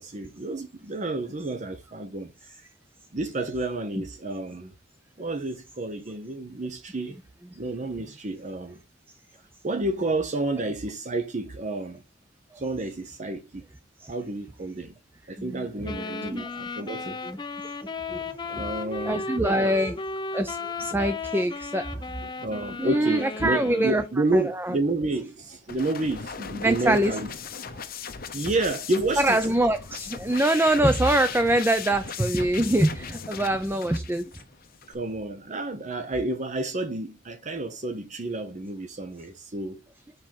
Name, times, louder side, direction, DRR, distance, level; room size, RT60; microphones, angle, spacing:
voice 1, 0.0-2.6 3.1-4.7 5.2-7.2 7.5-8.8 9.6-12.0 12.6-13.6 14.1-14.9 15.3-17.2 18.5-19.3 19.6-19.7 22.4-27.3 27.7-27.9 28.3-29.4 34.9-39.8, right 2 dB, 40° right, 0.8 m, -30 dB
voice 2, 15.4-16.5 17.2-17.4 18.1-18.2 19.1-20.0 20.3-21.9 22.8-24.0 24.3-24.8 26.6-27.1 29.2-34.3, right 1 dB, 10° right, 0.4 m, -24 dB
sound 1, 15.8-24.2, left 3 dB, 25° left, 0.7 m, -35 dB
sound 2, 25.7-34.9, left 6 dB, 50° left, 0.8 m, -38 dB
5.2 x 4.4 x 5.8 m
head